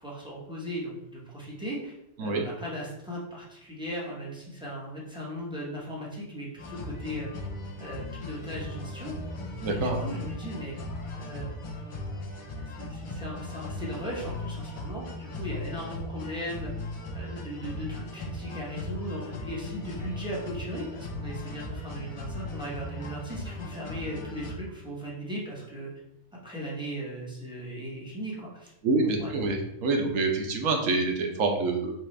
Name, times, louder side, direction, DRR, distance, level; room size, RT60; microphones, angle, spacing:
voice 1, 0.0-7.3 7.8-9.1 9.7-10.8 11.1-11.5 12.6-16.7 17.1-25.9 26.4-28.7 29.0-29.3, equal, 5° right, -5 dB, 1.0 m, -37 dB
sound 1, 6.6-24.5, left 2 dB, 40° left, 0.4 m, -38 dB
voice 2, 9.6-10.0 28.8-31.9, right 3 dB, 75° right, 2 dB, 1.1 m, -26 dB
5.8 x 2.4 x 3.2 m, 0.85 s
omnidirectional pair, 1.4 m